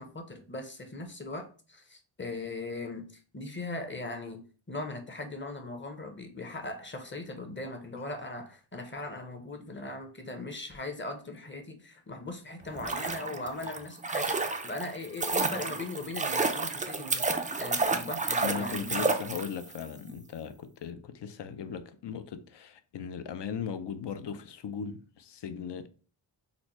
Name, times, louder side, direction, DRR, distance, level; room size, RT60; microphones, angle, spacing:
voice 1, 0.0-19.1, left 2 dB, 25° left, 0.7 m, -39 dB
sound 1, 12.6-19.8 20.1-20.2, right 3 dB, 20° right, 0.3 m, -31 dB
voice 2, 18.4-25.9, left 6 dB, 60° left, 0.5 m, -38 dB
3.9 x 2.1 x 2.9 m
wide cardioid pair, 65°, 47 cm